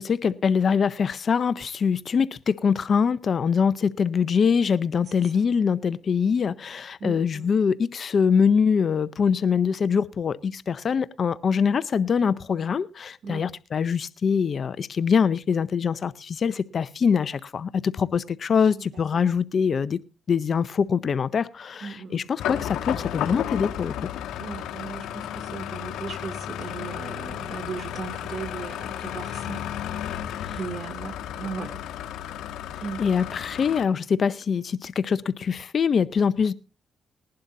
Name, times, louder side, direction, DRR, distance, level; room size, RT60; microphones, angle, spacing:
voice 1, 0.0-20.0 20.3-23.9 30.4-30.6 33.0-36.5, left 6 dB, 50° left, 0.6 m, -24 dB
voice 2, 5.1-5.5 7.0-7.5 13.2-13.4 18.7-19.3 21.8-22.3 24.4-29.6 29.9-30.2 30.6-31.8 32.8-33.0, right 5 dB, 50° right, 2.5 m, -37 dB
sound 1, 22.4-33.8, left 10 dB, 85° left, 1.2 m, -33 dB
20.0 x 11.5 x 2.7 m
cardioid pair, 90°, 0 cm